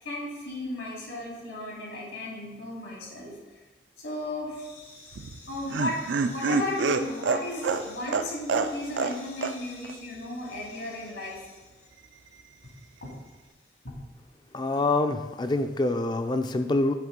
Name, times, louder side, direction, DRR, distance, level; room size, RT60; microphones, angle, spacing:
voice 1, 0.0-3.3 4.0-11.6 13.0-13.1 13.8-13.9, left 1 dB, 85° left, -4 dB, 2.4 m, -35 dB
Laughter, 5.1-9.2 9.4-9.5 9.8-9.9, right 4 dB, 90° right, 0.4 m, -27 dB
voice 2, 14.5-17.0, left 2 dB, 25° left, 8 dB, 0.3 m, -26 dB
8.5 x 3.4 x 5.1 m, 1.2 s
head